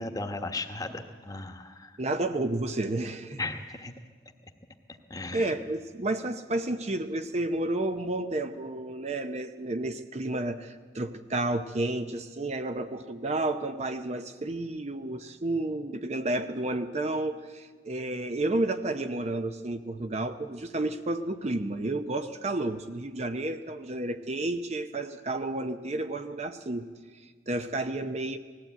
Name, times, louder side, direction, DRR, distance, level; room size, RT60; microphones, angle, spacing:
voice 1, 0.0-2.0 3.4-3.9 5.1-5.5, left 2 dB, 20° left, 6 dB, 1.2 m, -36 dB
voice 2, 2.0-3.4 5.3-26.8 27.2-28.4, right 2 dB, 35° right, 8 dB, 0.7 m, -31 dB
19.5 x 15.0 x 9.0 m, 1.5 s
head